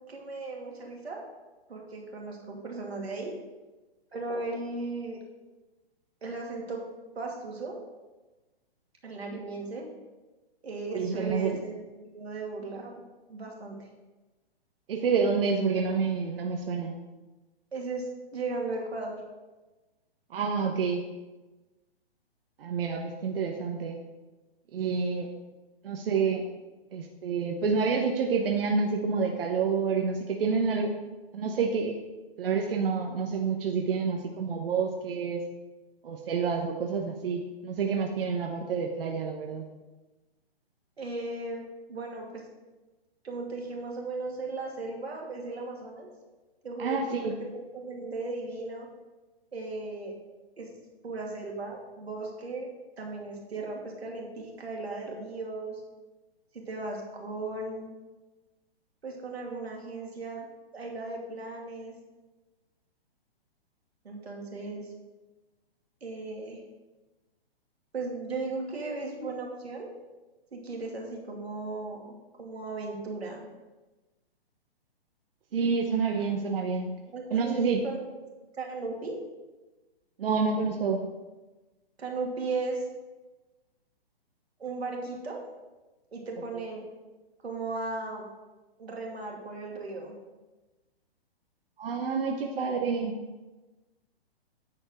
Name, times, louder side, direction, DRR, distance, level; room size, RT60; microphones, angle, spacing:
voice 1, 0.1-1.2 1.7-3.3 4.1-5.2 6.2-6.8 7.2-7.8 9.0-9.8 10.6-11.8 12.1-12.9 13.3-13.8 17.7-19.2 41.0-42.4 43.2-46.1 46.6-48.9 49.5-50.1 50.6-50.7 51.0-52.7 53.0-55.8 56.5-57.9 59.0-60.5 60.7-61.9 64.0-64.9 66.0-66.6 67.9-69.9 70.5-73.4 76.1-76.4 77.1-78.1 78.6-79.2 82.0-82.9 84.6-85.4 86.1-86.8 87.4-88.3 88.8-90.2, right 3 dB, 85° right, 0 dB, 2.6 m, -36 dB
voice 2, 10.9-11.6 14.9-17.0 20.3-21.0 22.6-24.0 24.7-25.3 25.8-26.5 26.9-30.9 31.3-32.0 32.4-35.4 36.0-39.6 46.8-47.4 75.5-76.9 77.3-77.8 80.2-81.0 91.8-93.2, right 5 dB, 65° right, 2 dB, 1.0 m, -28 dB
9.9 x 4.4 x 6.3 m, 1.2 s
hypercardioid pair, 135°, 31 cm